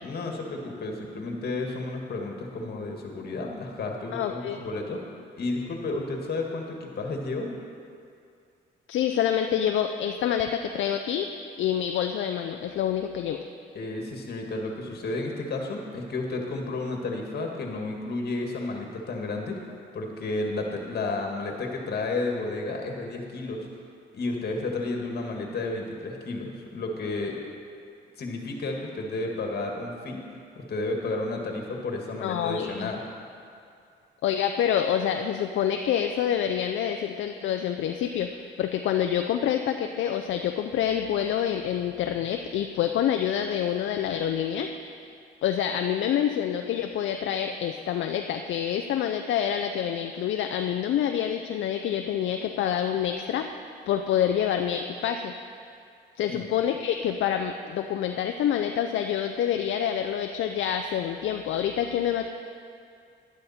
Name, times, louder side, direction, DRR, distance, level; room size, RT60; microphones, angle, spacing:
voice 1, 0.0-5.0 5.4-7.5 13.7-19.6 19.9-23.7 24.1-27.4 28.2-30.2 30.6-33.0 56.3-56.5, left 2 dB, 55° left, 1 dB, 1.9 m, -32 dB
voice 2, 4.1-4.6 8.9-11.3 11.6-13.4 32.2-32.9 34.2-44.7 45.4-53.6 53.9-55.3 56.2-62.3, left 9 dB, 75° left, 5 dB, 0.6 m, -27 dB
11.5 x 11.0 x 4.3 m, 2.4 s
cardioid pair, 90°, 20 cm